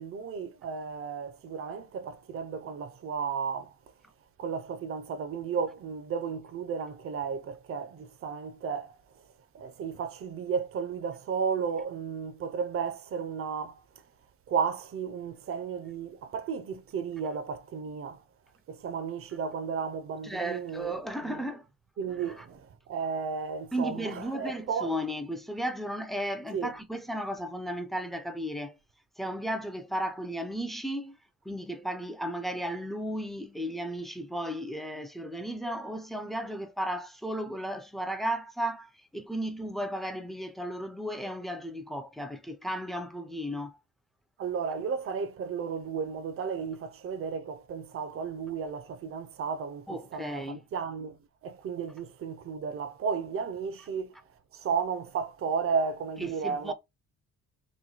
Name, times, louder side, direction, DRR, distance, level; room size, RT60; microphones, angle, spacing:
voice 1, 0.0-3.7 4.4-9.0 9.5-13.8 14.5-18.2 18.7-21.4 22.0-24.9 26.5-26.8 44.4-54.1 54.5-56.7, right 6 dB, 45° right, 0.6 m, -33 dB
voice 2, 20.2-21.6 23.7-28.7 29.2-31.2 31.5-43.8 49.9-50.6 56.2-56.7, right 1 dB, ahead, 0.5 m, -34 dB
3.1 x 2.2 x 3.9 m
cardioid pair, 90°, 30 cm